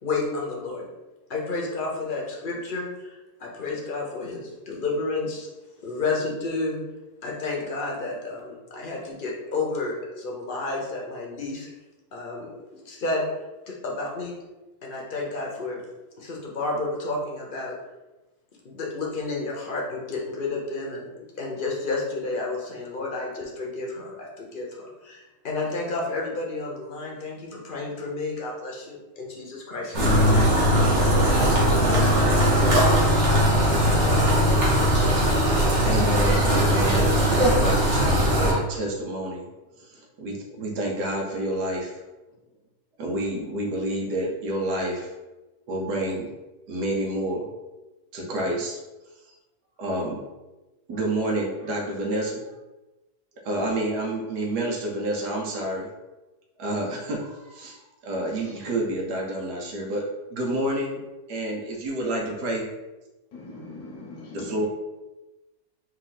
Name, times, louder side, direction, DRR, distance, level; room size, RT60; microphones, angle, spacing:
voice 1, 0.0-0.9 1.3-5.5 5.8-6.8 7.2-11.7 12.1-12.5 12.8-13.3 13.7-14.3 14.8-15.8 16.2-17.8 18.6-21.1 21.4-30.5, left 3 dB, 40° left, -2 dB, 0.8 m, -31 dB
sound 1, 29.9-38.5, equal, 45° right, 1.5 m, -19 dB
voice 2, 35.8-39.4 39.8-42.0 43.0-45.1 45.7-46.3 46.7-47.5 48.1-48.8 49.8-50.2 50.9-52.4 53.4-55.9 56.6-60.0 60.3-61.0 61.3-62.7 64.3-64.6, right 1 dB, 85° right, -1 dB, 1.6 m, -29 dB
voice 3, 63.3-64.6, left 2 dB, 75° left, -2 dB, 1.3 m, -40 dB
4.5 x 2.7 x 3.9 m, 1.1 s
omnidirectional pair, 1.7 m